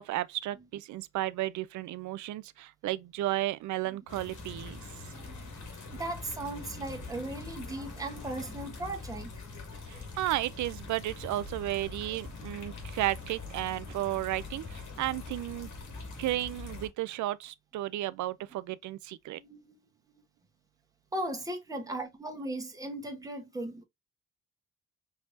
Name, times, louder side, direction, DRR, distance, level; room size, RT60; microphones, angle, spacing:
voice 1, 0.0-4.8 9.9-15.7 16.2-19.4, right 15 dB, 70° right, 0.5 m, -33 dB
sound 1, 4.1-16.9, left 3 dB, 75° left, 2.1 m, -43 dB
voice 2, 5.1-5.5 5.9-9.4 9.9-10.0 19.3-19.9 21.1-23.8, right 1 dB, 10° right, 1.1 m, -38 dB
4.7 x 3.3 x 2.6 m
cardioid pair, 90°, 30 cm